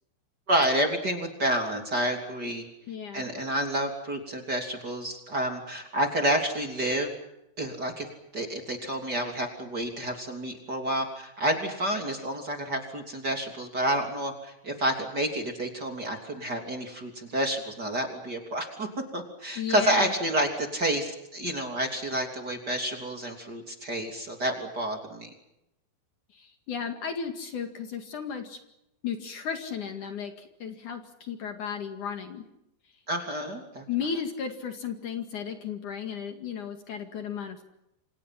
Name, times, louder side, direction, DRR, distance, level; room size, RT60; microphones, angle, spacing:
voice 1, 0.5-2.7 3.1-7.1 7.6-8.1 8.3-18.9 19.1-25.3 33.1-33.8, right 1 dB, 25° right, 3 dB, 3.3 m, -29 dB
voice 2, 2.9-3.2 19.6-20.1 26.3-28.6 29.0-32.4 33.9-37.7, left 7 dB, 55° left, 5 dB, 3.4 m, -34 dB
28.5 x 27.0 x 5.8 m, 0.85 s
omnidirectional pair, 4.4 m